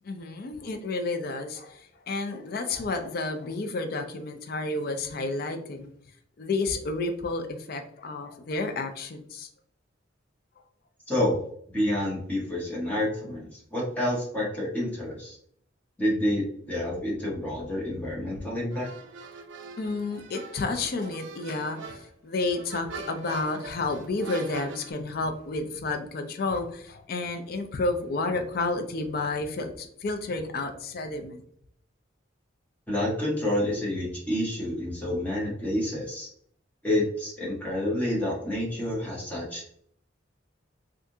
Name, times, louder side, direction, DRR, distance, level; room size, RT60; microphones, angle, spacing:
voice 1, 0.0-5.9 6.4-9.5 19.8-31.4, left 3 dB, 50° left, 6 dB, 0.4 m, -31 dB
voice 2, 11.1-11.4 11.7-15.4 16.0-18.9 32.9-36.3 36.8-39.7, left 1 dB, 10° left, -5 dB, 1.1 m, -28 dB
sound 1, 18.7-24.9, right 4 dB, 70° right, 0.4 m, -43 dB
3.4 x 2.4 x 2.7 m, 0.63 s
head